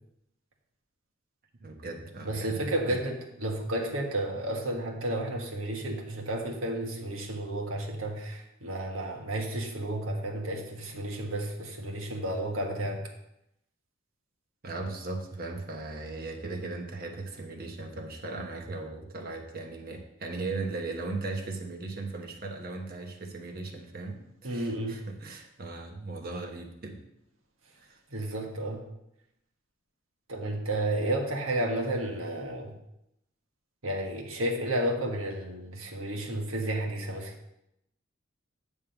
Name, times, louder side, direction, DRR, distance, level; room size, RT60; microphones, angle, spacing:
voice 1, 1.5-2.6 2.9-3.0 14.6-27.0 27.8-28.0, right 3 dB, 50° right, 3 dB, 1.2 m, -38 dB
voice 2, 2.3-13.0 24.4-25.0 28.1-28.8 30.3-32.7 33.8-37.3, right 1 dB, 85° right, 0 dB, 1.5 m, -32 dB
9.8 x 3.6 x 7.0 m, 0.83 s
head